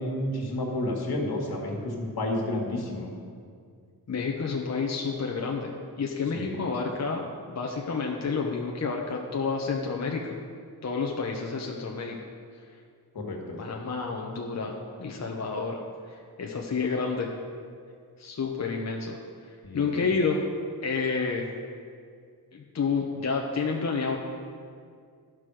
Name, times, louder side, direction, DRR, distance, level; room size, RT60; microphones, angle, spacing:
voice 1, 0.0-3.1 6.3-6.6 13.1-13.6 19.6-20.0, left 1 dB, 70° left, 0 dB, 1.9 m, -31 dB
voice 2, 4.1-10.4 10.8-12.2 12.7-12.8 13.6-15.8 16.1-17.3 18.2-19.2 19.5-20.5 20.8-21.5 22.5-24.2, left 4 dB, 45° left, 1 dB, 0.9 m, -30 dB
12.0 x 6.1 x 4.9 m, 2.2 s
cardioid pair, 75°, 38 cm